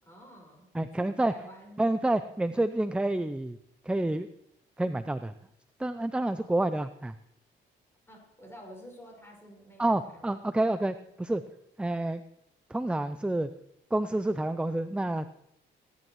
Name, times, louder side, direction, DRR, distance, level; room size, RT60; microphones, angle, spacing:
voice 1, 0.0-0.7 1.0-1.8 6.4-6.5 8.1-10.4, equal, 10° left, 0 dB, 5.3 m, -50 dB
voice 2, 0.7-1.3 1.8-3.6 3.8-4.3 4.8-5.3 5.8-7.1 9.8-11.4 11.8-12.2 12.7-13.5 13.9-15.3, right 1 dB, 5° right, 12 dB, 0.4 m, -28 dB
20.5 x 10.5 x 3.1 m, 0.78 s
cardioid pair, 90°, 20 cm